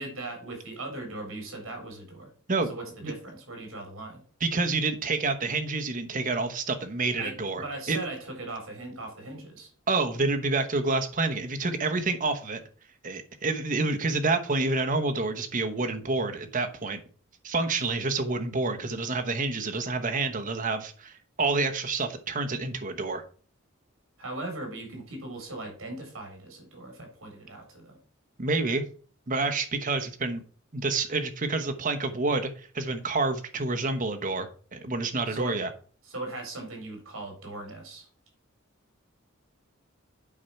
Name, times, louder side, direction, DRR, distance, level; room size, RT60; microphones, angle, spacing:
voice 1, 0.0-2.3 2.7-4.2 7.2-9.7 24.2-28.0 35.3-35.5 36.0-38.1, right 2 dB, 70° right, 3 dB, 3.7 m, -39 dB
voice 2, 4.4-8.0 9.9-12.6 13.0-17.0 17.4-23.2 28.4-28.8 29.3-30.4 30.7-32.5 32.7-34.5 34.7-35.7, right 3 dB, 40° right, 6 dB, 1.0 m, -28 dB
8.5 x 4.4 x 5.7 m, 0.42 s
head